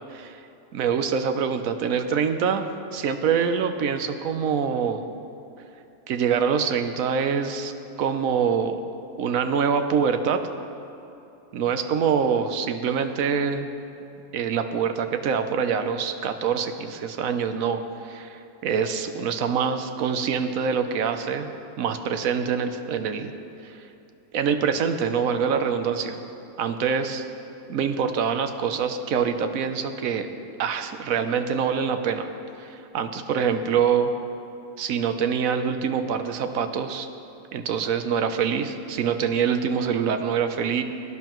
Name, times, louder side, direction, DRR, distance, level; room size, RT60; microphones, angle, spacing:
voice 1, 0.7-5.1 6.1-7.7 8.0-8.8 9.2-10.4 11.5-13.7 14.3-21.5 21.8-23.3 23.6-23.8 24.3-26.2 26.6-27.2 27.7-30.3 30.6-32.3 32.6-34.1 34.8-37.1 37.5-40.8, right 6 dB, 70° right, 8 dB, 1.1 m, -25 dB
18.0 x 11.0 x 3.1 m, 2.8 s
omnidirectional pair, 1.5 m